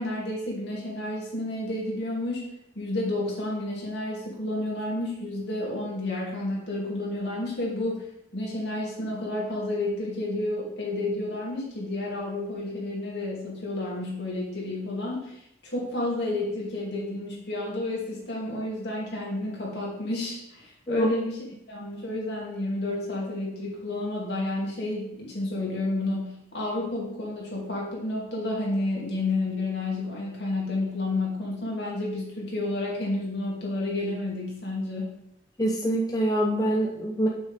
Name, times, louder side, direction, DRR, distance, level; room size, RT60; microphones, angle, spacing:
voice 1, 0.0-8.1 8.3-21.4 21.7-35.1, left 2 dB, 70° left, -4 dB, 2.6 m, -30 dB
voice 2, 35.6-37.3, right 1 dB, 20° left, -2 dB, 0.7 m, -25 dB
7.5 x 6.2 x 3.6 m, 0.76 s
head